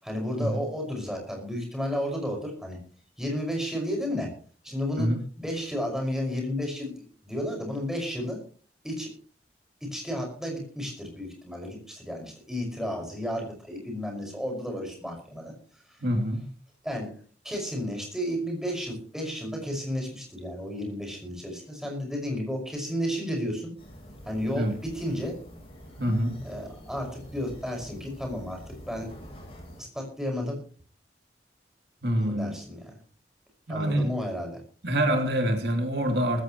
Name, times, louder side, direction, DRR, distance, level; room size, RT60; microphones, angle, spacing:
voice 1, 0.0-2.8 3.2-4.3 4.6-5.1 5.4-7.0 7.2-8.4 8.8-9.1 9.8-15.5 16.8-17.1 17.4-23.7 24.2-25.4 26.4-29.1 29.8-30.6 32.2-32.9 33.7-34.6, equal, 5° right, 1 dB, 5.7 m, -32 dB
voice 2, 16.0-16.4 24.6-24.7 26.0-26.4 32.0-32.5 33.7-34.1 34.8-36.4, equal, 65° right, 3 dB, 2.9 m, -26 dB
sound 1, 23.8-29.8, equal, 30° left, 8.0 m, -46 dB
19.5 x 15.5 x 3.1 m, 0.40 s
head